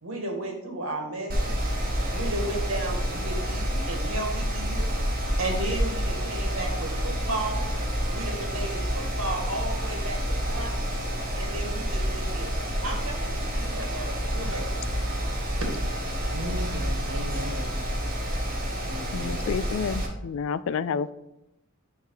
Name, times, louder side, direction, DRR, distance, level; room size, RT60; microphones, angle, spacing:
voice 1, 0.0-1.6 2.1-7.7 8.1-10.9 11.4-12.5 12.8-14.7 15.5-15.7, right 2 dB, 85° right, 1.9 m, -34 dB
Mechanical fan, 1.3-20.1, equal, 45° right, 1.3 m, -29 dB
voice 2, 16.3-17.8 18.9-19.6, equal, 70° right, 1.0 m, -37 dB
voice 3, 19.1-21.1, left 6 dB, 65° left, 0.3 m, -29 dB
9.1 x 3.6 x 4.8 m
head